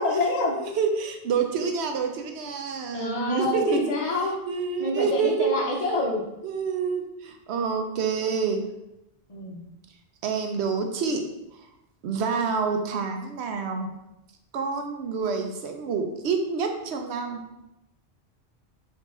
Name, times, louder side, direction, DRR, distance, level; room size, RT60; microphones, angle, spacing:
voice 1, 0.0-0.5 2.9-4.3 4.8-6.2 9.3-9.6, left 2 dB, 40° left, 0 dB, 0.7 m, -27 dB
voice 2, 0.5-3.9 4.2-5.5 6.4-8.6 10.2-11.2 12.0-13.9 14.5-17.4, right 5 dB, 75° right, 5 dB, 0.8 m, -27 dB
3.8 x 2.8 x 3.6 m, 0.89 s
omnidirectional pair, 1.1 m